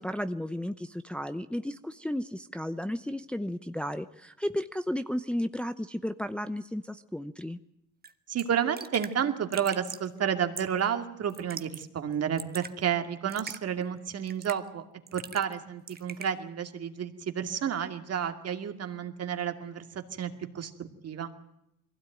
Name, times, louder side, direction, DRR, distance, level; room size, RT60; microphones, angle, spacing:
voice 1, 0.0-7.6, left 1 dB, 5° left, 9 dB, 0.8 m, -33 dB
Raindrop / Drip, 8.0-8.1 8.4-8.5 8.8-9.1 9.5-10.1 10.6-10.8 11.3-11.8 12.1-12.7 13.3-13.6 14.3-14.7 15.1-15.6 15.9-16.3, right 6 dB, 30° right, 1.3 m, -41 dB
voice 2, 8.3-14.8 15.1-21.3, right 8 dB, 50° right, 7 dB, 2.4 m, -31 dB
22.0 x 16.5 x 9.1 m, 0.83 s
cardioid pair, 95°, 32 cm